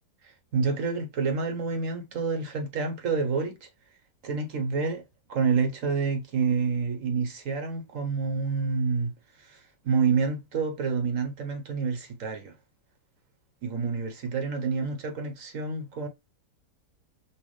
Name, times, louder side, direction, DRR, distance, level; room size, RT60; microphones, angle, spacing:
voice 1, 0.5-3.7 4.2-5.0 5.3-9.1 9.4-9.6 9.8-12.5 13.6-16.1, right 5 dB, 55° right, 1.1 m, -28 dB
5.7 x 2.5 x 3.1 m
omnidirectional pair, 1.9 m